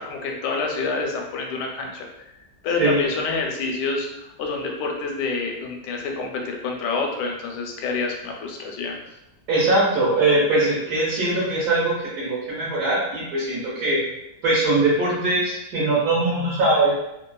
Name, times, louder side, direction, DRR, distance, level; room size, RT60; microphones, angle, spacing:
voice 1, 0.0-2.3 2.6-9.0, left 4 dB, 80° left, 1 dB, 1.2 m, -28 dB
voice 2, 2.8-3.1 9.5-14.0 14.4-16.9, right 2 dB, 70° right, -7 dB, 1.2 m, -21 dB
3.0 x 2.3 x 2.2 m, 0.86 s
omnidirectional pair, 1.8 m